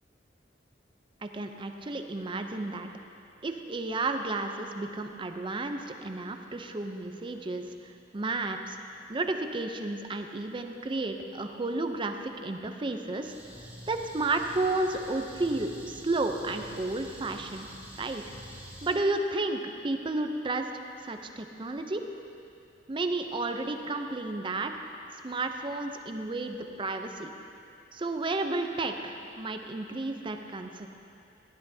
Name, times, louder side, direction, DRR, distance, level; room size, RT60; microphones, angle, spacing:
voice 1, 1.2-2.9 3.4-8.8 9.1-13.3 13.9-17.7 18.0-18.2 18.8-20.7 21.0-22.0 22.9-24.7 25.2-27.3 27.9-30.9, right 2 dB, 30° right, 6 dB, 0.5 m, -32 dB
sound 1, 13.2-19.0, equal, 10° right, 2.2 m, -47 dB
15.5 x 11.0 x 2.7 m, 2.6 s
head